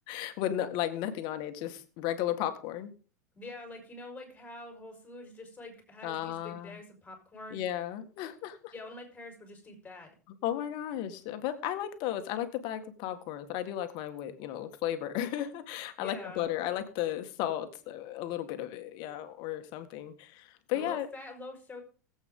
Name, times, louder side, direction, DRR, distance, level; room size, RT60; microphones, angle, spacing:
voice 1, 0.0-2.9 6.0-6.8 7.5-8.7 10.4-21.1, left 12 dB, 55° left, 9 dB, 1.7 m, -34 dB
voice 2, 3.3-7.7 8.7-10.1 16.0-16.5 20.7-21.8, left 2 dB, 15° left, 3 dB, 5.0 m, -45 dB
19.5 x 8.2 x 3.8 m, 0.39 s
hypercardioid pair, 100°, 9 cm